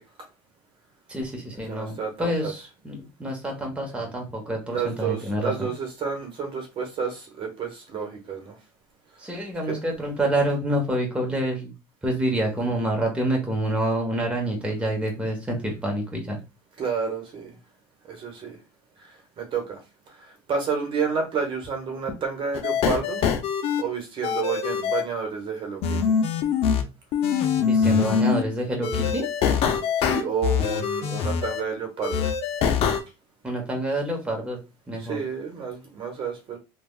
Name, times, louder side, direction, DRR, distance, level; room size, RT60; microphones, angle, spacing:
voice 1, 1.1-5.5 9.2-11.7 12.0-16.4 27.6-29.3 33.4-34.6 34.9-35.2, right 1 dB, 10° right, 0 dB, 1.1 m, -27 dB
voice 2, 1.7-2.5 4.7-8.6 9.7-9.8 16.8-17.5 18.1-18.6 19.0-19.1 19.4-19.8 20.5-23.2 23.8-26.1 27.7-27.8 30.0-32.3 35.0-36.6, right 5 dB, 40° right, 3 dB, 1.1 m, -30 dB
sound 1, 22.5-23.8 24.2-25.0 25.8-26.8 27.1-28.4 28.8-31.6 32.0-33.0, left 7 dB, 50° left, 0.6 m, -23 dB
3.3 x 2.3 x 2.3 m, 0.27 s
supercardioid pair, 105°, 13 cm